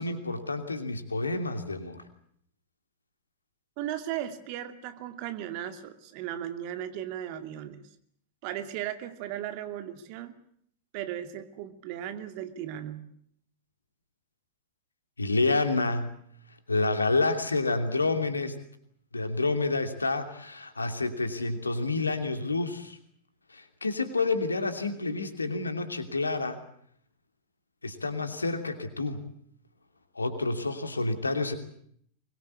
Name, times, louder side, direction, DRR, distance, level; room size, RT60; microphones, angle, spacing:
voice 1, 0.0-2.0 15.2-16.1 16.7-18.6 19.1-23.0 23.5-26.6 27.8-29.2 30.1-31.5, left 3 dB, 80° left, 8 dB, 2.8 m, -29 dB
voice 2, 3.8-7.8 8.4-10.3 10.9-13.0, right 11 dB, 45° right, 9 dB, 2.4 m, -36 dB
24.0 x 22.0 x 8.4 m, 0.67 s
figure-of-eight pair, 90°, 0 cm